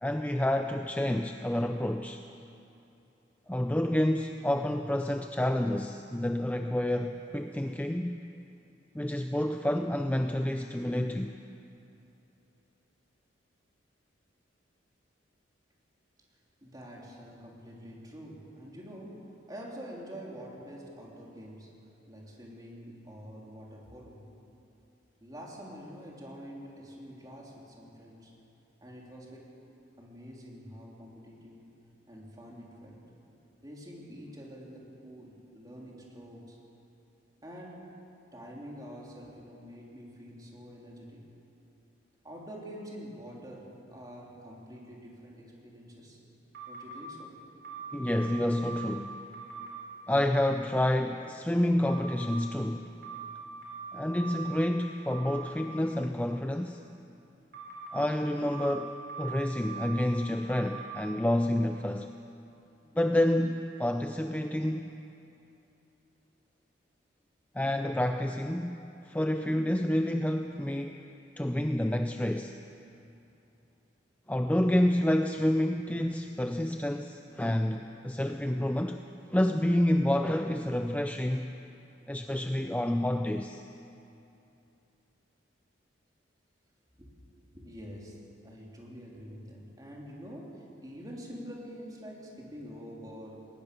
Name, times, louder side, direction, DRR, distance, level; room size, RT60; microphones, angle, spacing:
voice 1, 0.0-2.3 3.5-8.2 8.9-11.3 47.9-49.2 50.1-52.9 53.9-56.8 57.9-62.1 62.9-64.9 67.5-71.0 71.4-72.6 74.3-79.0 79.3-81.5 82.1-83.6, left 1 dB, 10° left, 6 dB, 0.4 m, -29 dB
voice 2, 16.6-21.7 22.1-24.3 25.2-28.3 28.8-29.5 30.0-31.7 32.1-33.0 33.6-36.6 37.4-37.9 38.3-41.3 42.2-46.2 46.7-47.3 87.0-87.1 87.5-88.2 88.4-93.5, equal, 20° right, -3 dB, 3.3 m, -46 dB
sound 1, 46.5-47.0 47.6-49.0 49.3-49.8 51.9-52.4 53.0-54.6 55.1-55.5 57.5-58.0 58.5-60.0 60.5-61.0, right 7 dB, 60° right, 4.9 m, -42 dB
20.5 x 19.5 x 6.7 m, 2.9 s
head